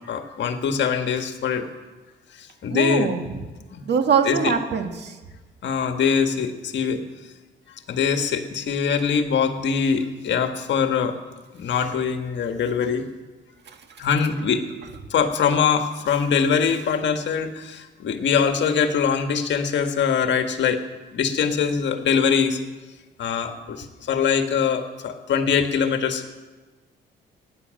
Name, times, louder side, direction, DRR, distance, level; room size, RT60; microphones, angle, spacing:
voice 1, 0.1-1.7 2.4-3.1 3.7-3.8 4.2-4.5 5.6-7.0 7.9-11.1 11.5-13.0 14.0-14.6 15.1-20.8 21.1-22.6 23.2-26.4, left 6 dB, 65° left, 6 dB, 1.6 m, -23 dB
voice 2, 2.7-3.4 3.8-5.2 13.7-14.0, right 6 dB, 60° right, 6 dB, 1.8 m, -23 dB
16.0 x 10.0 x 7.6 m, 1.3 s
cardioid pair, 90°, 20 cm